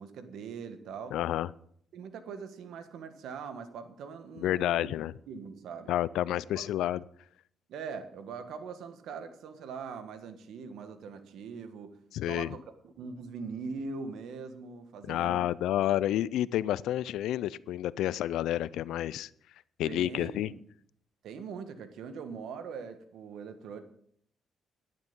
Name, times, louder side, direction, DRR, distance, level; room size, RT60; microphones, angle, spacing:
voice 1, 0.0-1.2 1.9-4.9 5.3-5.9 6.3-6.6 7.7-11.9 12.3-15.5 19.8-20.6 21.2-23.8, right 5 dB, 75° right, 1.5 m, -42 dB
voice 2, 1.1-1.5 4.4-5.1 5.9-7.0 12.1-12.5 15.1-19.3 19.8-20.5, left 13 dB, 85° left, 0.4 m, -29 dB
11.5 x 10.0 x 5.4 m
cardioid pair, 90°, 0 cm